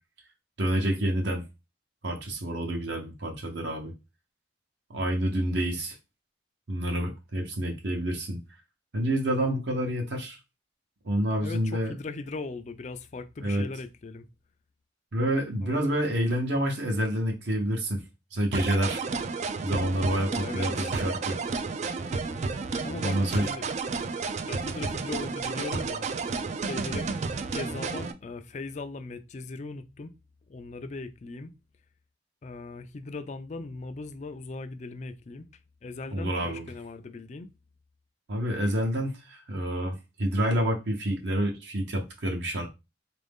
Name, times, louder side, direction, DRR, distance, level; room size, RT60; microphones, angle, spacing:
voice 1, 0.6-1.4 2.0-3.9 4.9-6.0 6.7-8.6 8.9-10.4 11.0-11.9 13.4-13.7 15.1-18.0 18.3-19.0 19.6-21.4 23.0-23.5 36.1-36.7 38.3-42.7, right 1 dB, 65° right, 0.8 m, -28 dB
voice 2, 11.4-14.3 15.6-16.0 20.3-21.0 22.8-23.6 24.5-26.1 26.7-27.1 27.4-30.1 30.5-31.5 32.4-35.5 35.8-37.5, left 3 dB, 35° left, 0.4 m, -39 dB
sound 1, 18.5-28.1, right 4 dB, 35° right, 0.3 m, -31 dB
3.8 x 2.6 x 3.5 m
head